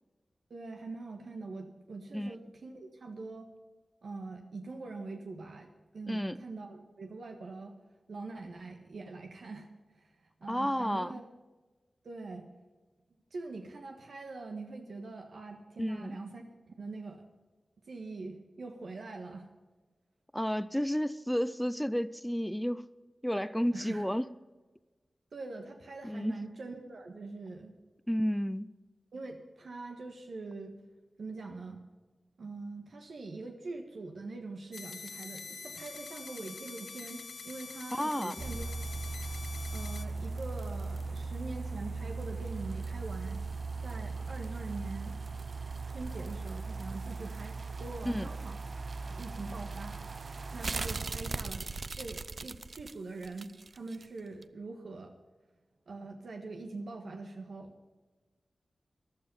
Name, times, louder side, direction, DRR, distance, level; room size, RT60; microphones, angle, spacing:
voice 1, 0.5-3.5 4.0-5.7 5.9-7.7 8.1-9.7 9.9-11.2 12.0-12.5 13.3-17.2 17.8-19.5 23.7-24.1 25.3-27.7 29.1-30.7 31.2-31.8 32.4-38.9 39.7-43.4 43.8-45.2 45.8-50.0 50.5-51.6 51.9-55.1 55.9-57.7, right 3 dB, 85° right, 3 dB, 1.5 m, -43 dB
voice 2, 6.1-6.4 10.5-11.2 15.8-16.2 20.3-22.8 23.2-24.3 26.0-26.4 28.1-28.7 37.9-38.4 48.1-48.3, equal, 5° left, 16 dB, 0.5 m, -31 dB
sound 1, 34.7-40.0, left 4 dB, 80° left, 0.8 m, -45 dB
sound 2, 38.4-54.0 54.4-54.5, right 3 dB, 55° right, 0.5 m, -38 dB
14.0 x 11.5 x 5.5 m, 1.2 s
wide cardioid pair, 70°, 0 cm